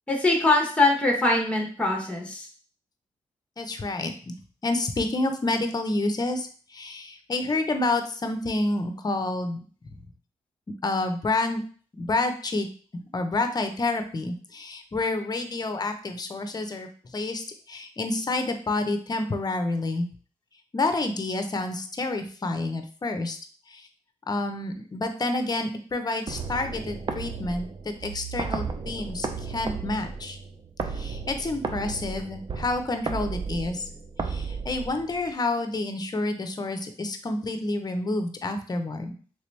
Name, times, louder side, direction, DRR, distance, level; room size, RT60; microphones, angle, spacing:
voice 1, 0.1-2.5, left 2 dB, 10° left, 1 dB, 0.9 m, -22 dB
voice 2, 3.6-4.3 4.6-9.6 9.9-10.0 10.8-11.6 12.0-12.7 13.1-20.1 20.7-23.4 23.7-23.9 24.3-30.4 30.9-33.9 34.2-39.1, left 2 dB, 30° left, 7 dB, 0.6 m, -29 dB
sound 1, 26.3-35.3, right 4 dB, 35° right, 0.5 m, -34 dB
3.3 x 2.9 x 3.2 m, 0.42 s
cardioid pair, 65°, 13 cm